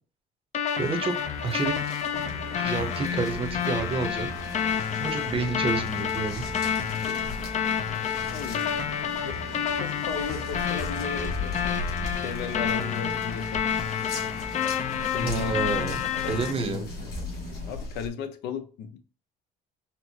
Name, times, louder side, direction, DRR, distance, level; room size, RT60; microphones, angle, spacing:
sound 1, 0.5-16.5, left 8 dB, 45° left, 0.5 m, -29 dB
sound 2, 0.7-18.1, left 3 dB, 65° left, 1.5 m, -40 dB
voice 1, 0.8-1.1 1.4-1.7 2.5-4.3 5.0-6.4 15.2-15.9 16.3-16.9, right 4 dB, 35° right, 0.7 m, -29 dB
sound 3, 2.1-17.8, right 3 dB, 80° right, 0.8 m, -43 dB
voice 2, 6.9-7.3 8.3-8.6 9.2-11.8 12.1-13.6 15.0-15.7 16.2-17.1 17.6-19.0, left 6 dB, 85° left, 0.6 m, -36 dB
4.3 x 2.0 x 2.7 m
cardioid pair, 110°, 17 cm